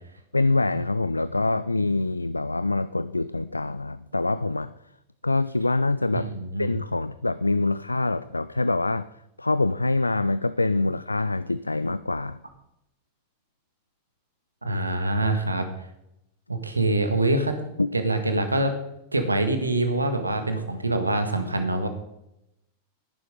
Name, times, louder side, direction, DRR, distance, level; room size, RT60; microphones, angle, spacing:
voice 1, 0.3-4.7 5.2-6.3 6.6-9.1 9.4-12.4 17.8-17.9, left 2 dB, 80° left, 16 dB, 0.3 m, -25 dB
voice 2, 6.1-6.7 14.6-15.7 16.5-17.6 17.9-18.7 19.1-21.9, right 2 dB, 80° right, 7 dB, 1.6 m, -25 dB
14.0 x 11.0 x 3.8 m, 0.83 s
figure-of-eight pair, 90°, 0 cm